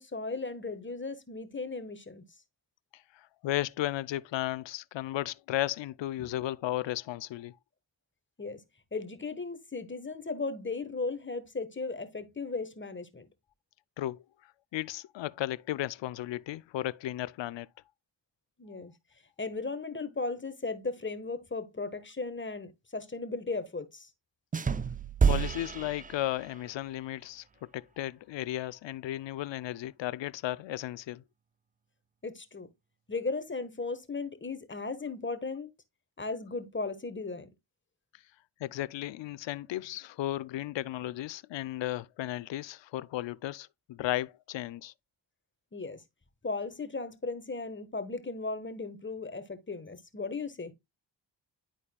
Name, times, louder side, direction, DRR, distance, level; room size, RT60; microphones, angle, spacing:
voice 1, 0.0-2.2 6.2-6.4 8.4-8.6 8.9-13.3 18.6-18.9 19.4-24.1 32.2-32.7 33.1-35.7 36.2-37.5 45.7-46.0 46.4-50.7, left 3 dB, 25° left, 1.3 m, -36 dB
voice 2, 3.2-7.6 14.0-14.2 14.7-17.7 25.2-31.2 38.6-44.9, left 14 dB, 70° left, 0.5 m, -35 dB
sound 1, 24.5-26.7, right 6 dB, 20° right, 0.4 m, -29 dB
11.5 x 4.2 x 2.2 m
cardioid pair, 55°, 46 cm